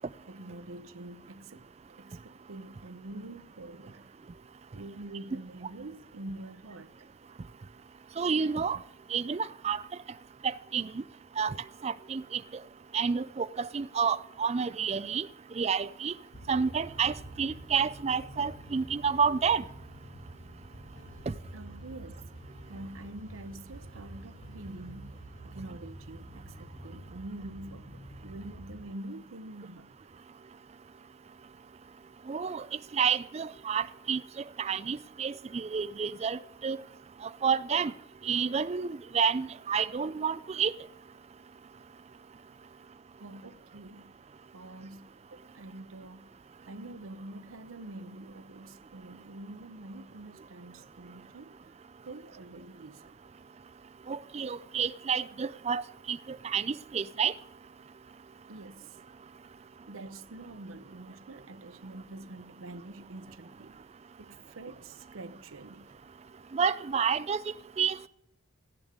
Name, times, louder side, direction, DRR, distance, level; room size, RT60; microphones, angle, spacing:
voice 1, 0.3-1.7 2.0-4.1 4.7-7.1 21.5-22.3 22.7-29.9 43.2-44.1 44.5-46.4 46.7-51.5 52.0-53.1 58.5-59.0 59.9-63.8 64.2-65.9, right 2 dB, 85° right, 0.8 m, -46 dB
voice 2, 8.2-8.8 9.1-9.8 10.4-11.0 11.4-11.5 11.8-12.4 12.9-15.3 15.6-16.1 16.5-19.6 21.3-21.4 32.3-32.7 32.9-34.2 34.6-36.8 37.4-37.9 38.2-40.7 54.1-55.8 56.1-57.3 66.5-67.4 67.8-68.1, right 6 dB, 30° right, 0.3 m, -29 dB
sound 1, 16.3-28.8, right 1 dB, 60° left, 1.9 m, -47 dB
15.0 x 10.5 x 3.7 m
head